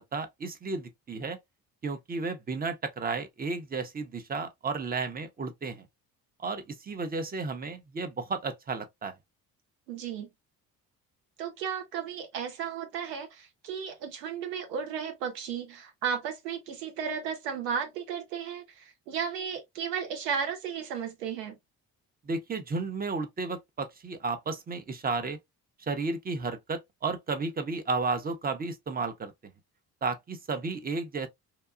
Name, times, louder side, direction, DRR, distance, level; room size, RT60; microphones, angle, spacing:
voice 1, 0.0-1.4 1.8-5.9 6.4-9.1 22.3-25.4 25.8-29.3 30.0-31.3, right 4 dB, 20° right, 0.6 m, -33 dB
voice 2, 9.9-10.3 11.4-21.6, right 7 dB, 85° right, 0.8 m, -34 dB
2.9 x 2.2 x 2.4 m
hypercardioid pair, 50°, 47 cm